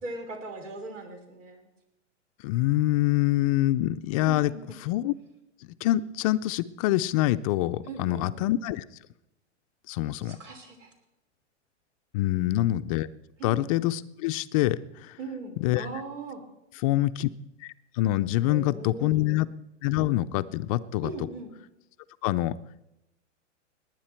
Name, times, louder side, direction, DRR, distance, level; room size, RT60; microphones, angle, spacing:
voice 1, 0.0-1.7 4.2-4.6 7.8-8.3 10.2-10.9 12.3-12.6 13.4-13.6 15.2-16.4 18.5-19.4 21.0-21.5, right 3 dB, 85° right, 5 dB, 3.4 m, -39 dB
voice 2, 2.4-4.5 4.9-5.1 5.8-8.8 9.9-10.4 12.1-13.1 13.4-14.8 15.6-15.9 16.8-17.3 18.0-19.5 19.8-21.1 22.2-22.6, left 15 dB, 30° left, 14 dB, 0.4 m, -25 dB
19.0 x 9.7 x 4.4 m, 0.91 s
hypercardioid pair, 125°, 36 cm